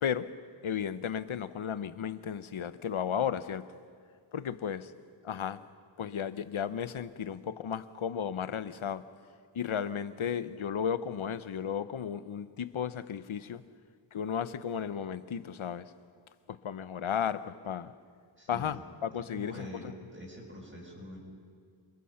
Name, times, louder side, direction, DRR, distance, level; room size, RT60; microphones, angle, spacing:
voice 1, 0.6-3.7 4.3-4.9 5.2-5.6 6.0-9.0 9.5-13.6 14.1-15.9 16.5-17.9 18.5-19.9, left 8 dB, 75° left, 14 dB, 0.9 m, -34 dB
voice 2, 18.4-18.8 19.3-21.2, equal, 25° right, -4 dB, 6.0 m, -45 dB
28.5 x 21.5 x 5.7 m, 2.1 s
wide cardioid pair, 85°, 49 cm